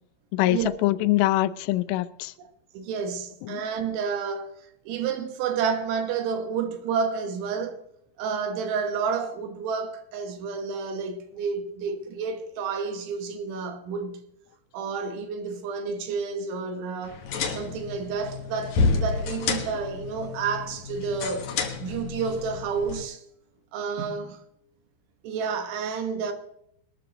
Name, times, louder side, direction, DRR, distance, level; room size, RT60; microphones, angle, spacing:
voice 1, 0.3-2.3 3.5-3.6, left 16 dB, 85° left, 3.1 m, -24 dB
voice 2, 2.7-7.8 8.2-14.3 14.7-17.2 17.5-21.5 21.8-23.2 23.7-24.4 25.2-26.3, right 5 dB, 75° right, 3.6 m, -30 dB
sound 1, 17.0-23.0, left 4 dB, 70° left, 1.9 m, -30 dB
22.5 x 13.0 x 3.0 m
omnidirectional pair, 5.6 m